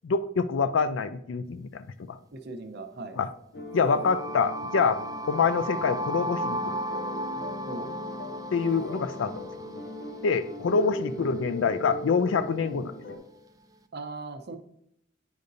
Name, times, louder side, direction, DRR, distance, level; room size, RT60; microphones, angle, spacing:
voice 1, 0.0-2.2 3.2-3.3 3.7-5.0 5.3-6.8 8.5-9.4 10.2-12.9, left 5 dB, 85° left, 12 dB, 0.4 m, -26 dB
voice 2, 2.3-3.2 7.7-7.9 13.9-14.6, right 3 dB, 60° right, 6 dB, 0.8 m, -38 dB
sound 1, 3.5-13.2, left 1 dB, 60° left, 0.9 m, -39 dB
sound 2, 3.7-11.6, right 1 dB, 20° right, 0.3 m, -35 dB
9.3 x 5.1 x 2.6 m, 0.75 s
head